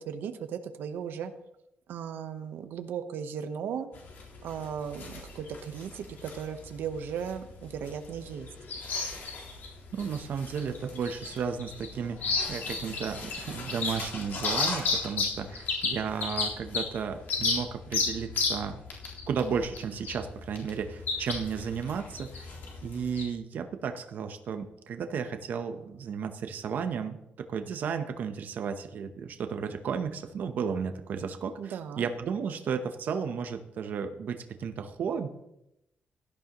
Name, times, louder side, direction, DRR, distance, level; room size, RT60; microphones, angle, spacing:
voice 1, 0.1-1.3 1.9-3.9 4.4-8.5 31.6-32.1, right 7 dB, 85° right, 8 dB, 1.0 m, -36 dB
sound 1, 3.9-23.2, left 4 dB, 65° left, 3.8 m, -34 dB
voice 2, 9.9-18.8 19.3-35.3, right 6 dB, 60° right, 7 dB, 0.9 m, -34 dB
16.5 x 12.0 x 3.0 m, 0.84 s
wide cardioid pair, 165°, 3 cm